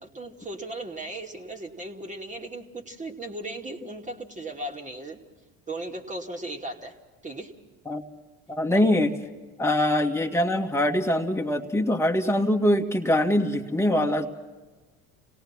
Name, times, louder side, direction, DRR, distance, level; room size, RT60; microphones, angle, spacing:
voice 1, 0.0-5.2 5.7-7.0 7.2-7.5 8.7-8.8, right 2 dB, 20° right, 2 dB, 2.6 m, -37 dB
voice 2, 8.5-9.1 9.6-14.3, left 1 dB, 5° left, 2 dB, 2.0 m, -23 dB
28.0 x 18.0 x 6.0 m, 1.2 s
supercardioid pair, 80°, 35 cm